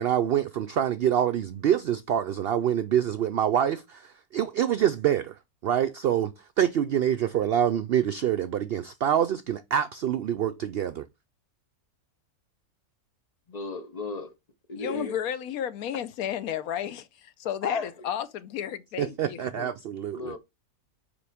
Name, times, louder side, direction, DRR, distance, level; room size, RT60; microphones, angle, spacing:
voice 1, 0.0-5.3 5.6-6.3 6.6-11.1 19.0-20.4, right 10 dB, 90° right, 0.5 m, -26 dB
voice 2, 13.5-14.3 14.7-15.1 17.6-17.9 20.1-20.4, left 3 dB, 35° left, 0.8 m, -34 dB
voice 3, 14.8-19.7, left 10 dB, 75° left, 1.1 m, -33 dB
7.0 x 4.8 x 3.5 m
omnidirectional pair, 1.6 m